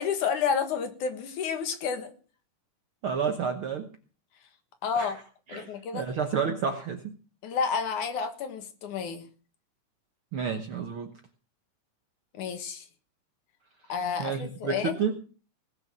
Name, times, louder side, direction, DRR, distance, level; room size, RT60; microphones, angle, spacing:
voice 1, 0.0-2.1 4.8-5.2 5.5-6.0 7.4-9.3 12.3-12.9 13.9-15.0, left 6 dB, 70° left, 8 dB, 3.0 m, -30 dB
voice 2, 3.0-3.9 4.9-5.1 5.5-7.2 10.3-11.1 14.2-15.2, right 6 dB, 60° right, 6 dB, 1.4 m, -30 dB
19.0 x 6.6 x 7.3 m, 0.39 s
omnidirectional pair, 3.7 m